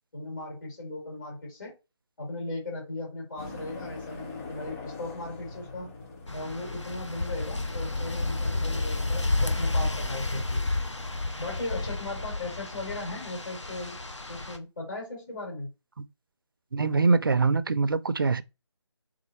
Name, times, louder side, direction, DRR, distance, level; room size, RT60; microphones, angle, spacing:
voice 1, 0.1-1.7 2.2-5.9 6.3-10.6 11.4-14.0 14.3-15.7, left 2 dB, 45° left, 3.0 m, -37 dB
sound 1, 3.4-10.2, left 3 dB, 30° left, 2.1 m, -42 dB
sound 2, 6.3-14.6, left 2 dB, 80° left, 0.9 m, -31 dB
voice 2, 16.7-18.4, right 4 dB, 50° right, 0.4 m, -23 dB
4.2 x 3.7 x 3.0 m
figure-of-eight pair, 155°, 15 cm